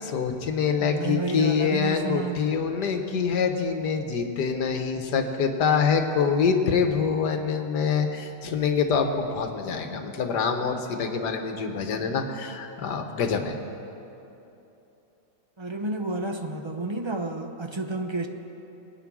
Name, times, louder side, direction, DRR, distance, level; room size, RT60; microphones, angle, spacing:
voice 1, 0.0-13.6, left 6 dB, 80° left, 6 dB, 1.7 m, -25 dB
voice 2, 0.8-2.5 15.6-18.3, right 2 dB, 40° right, 4 dB, 0.3 m, -30 dB
22.0 x 9.4 x 6.1 m, 3.0 s
omnidirectional pair, 1.8 m